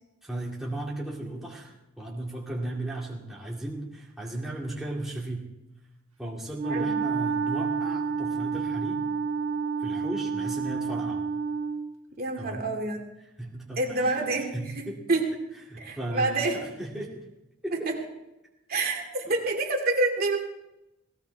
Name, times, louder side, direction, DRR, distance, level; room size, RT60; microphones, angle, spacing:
voice 1, 0.2-5.5 6.2-9.0 9.8-11.2 12.4-12.7 13.4-14.1 14.5-15.0 15.7-17.1 17.6-17.9 18.8-19.3, right 1 dB, ahead, -4 dB, 2.4 m, -36 dB
Wind instrument woodwind instrument, 6.5-11.9, right 5 dB, 85° right, 1.6 m, -29 dB
voice 2, 12.2-13.0 13.8-15.3 15.8-16.6 17.7-18.0 18.7-20.4, right 2 dB, 45° right, 1 dB, 2.4 m, -27 dB
18.0 x 18.0 x 3.5 m, 0.94 s
head